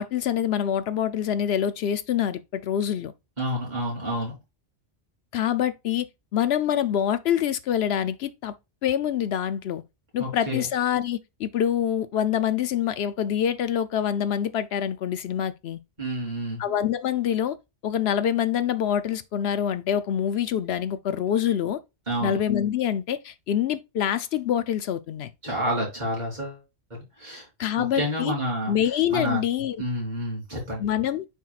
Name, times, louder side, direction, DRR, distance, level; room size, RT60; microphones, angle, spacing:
voice 1, 0.0-3.1 5.3-6.1 6.3-8.5 8.8-9.8 10.1-15.8 16.6-17.6 17.8-21.8 22.2-25.3 27.6-28.3 28.7-29.8 30.8-31.2, left 9 dB, 75° left, 0.8 m, -25 dB
voice 2, 3.4-4.4 10.2-10.6 16.0-16.6 22.1-22.4 25.4-26.6 26.9-27.5 27.9-28.7 29.1-29.4 29.8-30.8, equal, 45° right, 3.8 m, -29 dB
9.3 x 4.5 x 2.4 m
omnidirectional pair, 1.1 m